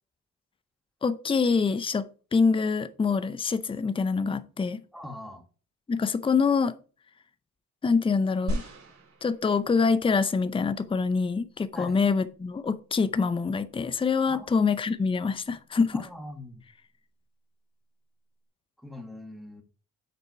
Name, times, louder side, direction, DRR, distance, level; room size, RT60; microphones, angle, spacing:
voice 1, 1.0-4.8 5.9-6.7 7.8-8.7 9.2-16.0, left 5 dB, 20° left, 0.5 m, -25 dB
voice 2, 4.9-5.4 11.7-12.0 14.3-14.5 15.9-16.6 18.8-19.6, left 1 dB, ahead, 1.5 m, -42 dB
sound 1, 8.5-10.0 10.7-10.8, right 1 dB, 60° right, 3.8 m, -35 dB
6.8 x 4.2 x 4.7 m
cardioid pair, 90°, 30 cm